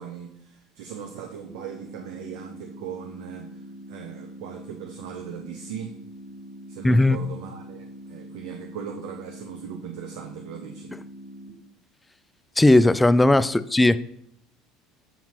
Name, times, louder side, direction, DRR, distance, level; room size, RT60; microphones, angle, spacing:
voice 1, 0.0-3.5 3.9-5.9 6.7-10.9, right 8 dB, 80° right, 4 dB, 0.6 m, -39 dB
sound 1, 1.5-11.5, equal, 20° right, 1.5 m, -43 dB
voice 2, 6.8-7.2 12.6-14.0, left 1 dB, 10° left, 15 dB, 0.3 m, -17 dB
6.9 x 5.7 x 3.0 m, 0.71 s
supercardioid pair, 100°, 0 cm